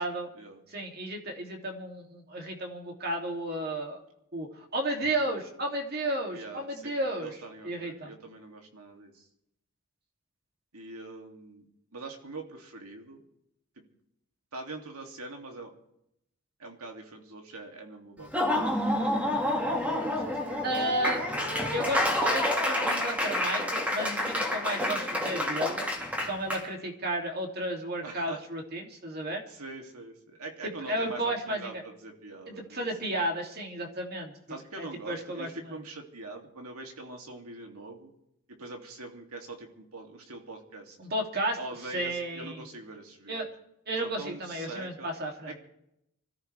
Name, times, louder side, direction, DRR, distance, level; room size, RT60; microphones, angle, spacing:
voice 1, 0.7-4.0 4.3-7.4 7.6-8.1 20.6-21.2 21.7-25.9 26.2-29.4 30.6-31.8 32.5-34.3 34.8-35.7 41.0-42.7 43.3-43.5 43.9-45.5, right 1 dB, 45° right, 1 dB, 2.8 m, -33 dB
voice 2, 6.3-9.2 10.7-11.7 11.9-13.2 13.8-13.9 14.5-15.7 16.6-19.4 20.0-20.8 21.8-22.5 28.0-28.4 29.5-33.1 34.5-38.1 38.5-41.0 41.6-43.4 44.0-45.1 45.5-45.6, right 2 dB, 90° right, 2 dB, 2.8 m, -44 dB
Laughter / Applause, 18.2-26.6, left 1 dB, 5° right, 2.2 m, -28 dB
25.5 x 14.0 x 3.5 m, 0.78 s
head